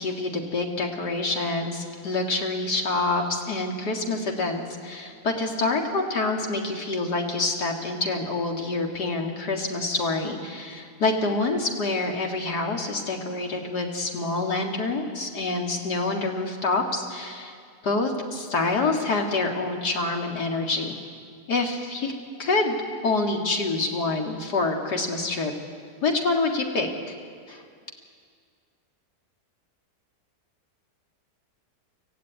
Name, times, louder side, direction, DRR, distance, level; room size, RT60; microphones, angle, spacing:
voice 1, 0.0-17.6 17.8-20.9 21.5-22.1 22.4-22.8 23.0-25.5 26.0-27.1 27.5-27.6, left 3 dB, 90° left, 2 dB, 2.7 m, -26 dB
25.0 x 14.5 x 9.4 m, 2.1 s
omnidirectional pair, 1.7 m